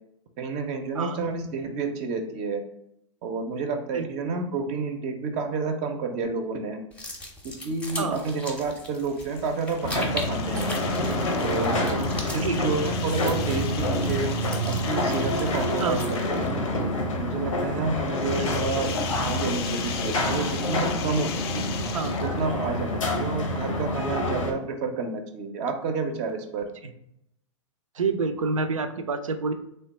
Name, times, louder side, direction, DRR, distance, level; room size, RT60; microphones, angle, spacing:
voice 1, 0.4-2.6 3.2-6.8 7.4-10.7 11.4-12.0 12.3-14.3 14.6-16.5 17.2-18.9 19.2-21.7 22.2-26.7, right 4 dB, 40° right, 5 dB, 0.5 m, -30 dB
sound 1, 6.9-16.3, left 1 dB, 5° left, 0.6 m, -39 dB
sound 2, 8.9-16.7 18.1-22.5, left 8 dB, 50° left, 0.4 m, -39 dB
sound 3, 9.8-24.5, left 1 dB, 85° left, 0.7 m, -27 dB
voice 2, 28.0-29.5, right 4 dB, 90° right, 9 dB, 0.4 m, -28 dB
3.3 x 2.2 x 3.9 m, 0.76 s
hypercardioid pair, 105°, 16 cm